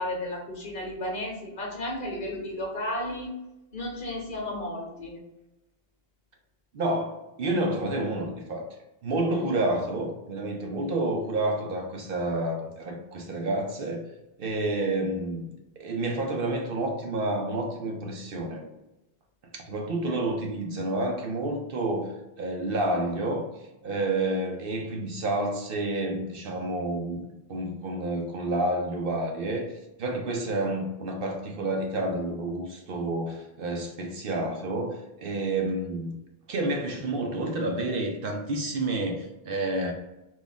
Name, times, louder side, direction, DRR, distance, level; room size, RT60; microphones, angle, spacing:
voice 1, 0.0-3.3 3.7-5.2, left 1 dB, 50° left, 0 dB, 1.0 m, -33 dB
voice 2, 6.7-8.7 9.0-14.0 14.4-15.5 15.8-18.7 19.5-22.1 22.4-23.4 23.8-29.7 30.0-36.2 36.5-39.9, right 2 dB, 60° right, 3 dB, 0.7 m, -29 dB
3.5 x 2.5 x 3.9 m, 0.97 s
omnidirectional pair, 1.1 m